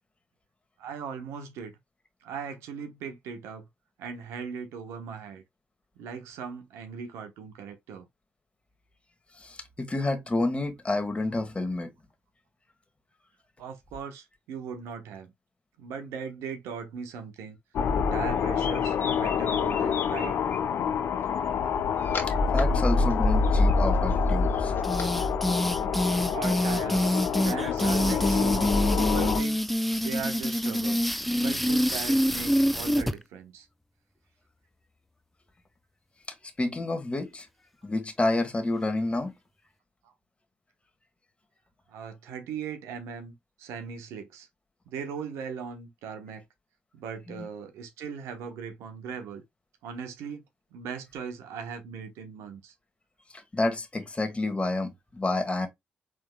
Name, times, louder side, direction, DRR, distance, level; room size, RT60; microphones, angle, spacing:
voice 1, 0.8-1.7 2.2-3.7 4.0-5.4 6.0-8.1 13.6-15.3 15.8-17.6 18.1-20.4 26.3-27.1 27.4-29.6 30.0-31.0 31.3-33.7 41.9-43.3 43.6-44.5 44.9-46.4 46.9-49.4 49.8-50.4 50.7-52.7, right 6 dB, 75° right, 1.0 m, -38 dB
voice 2, 9.3-11.9 22.2-24.7 36.6-37.5 37.8-39.3 47.4-47.5 53.3-55.7, left 2 dB, 25° left, 1.4 m, -29 dB
sound 1, 17.7-29.4, left 5 dB, 65° left, 0.6 m, -26 dB
sound 2, 18.3-20.6 21.4-22.6 22.9-25.1, left 5 dB, 45° left, 1.6 m, -39 dB
sound 3, 24.8-33.1, equal, ahead, 0.5 m, -26 dB
5.0 x 3.6 x 2.2 m
hypercardioid pair, 40°, 5 cm